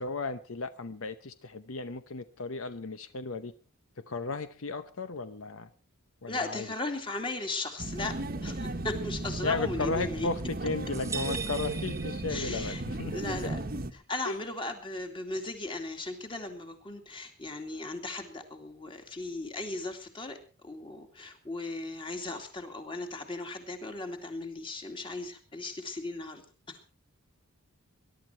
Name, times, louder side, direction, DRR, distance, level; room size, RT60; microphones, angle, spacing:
voice 1, 0.0-3.5 4.0-5.7 6.2-6.7 9.4-13.1 14.3-14.4, left 3 dB, 75° left, 12 dB, 0.9 m, -35 dB
voice 2, 6.3-10.3 12.3-12.8 13.1-13.6 14.1-26.4 26.7-26.8, left 2 dB, 25° left, 5 dB, 2.5 m, -37 dB
sound 1, 7.8-13.9, right 2 dB, 45° right, 1.2 m, -35 dB
sound 2, 10.9-12.9, right 6 dB, 15° right, 1.2 m, -39 dB
21.5 x 12.0 x 4.6 m, 0.36 s
head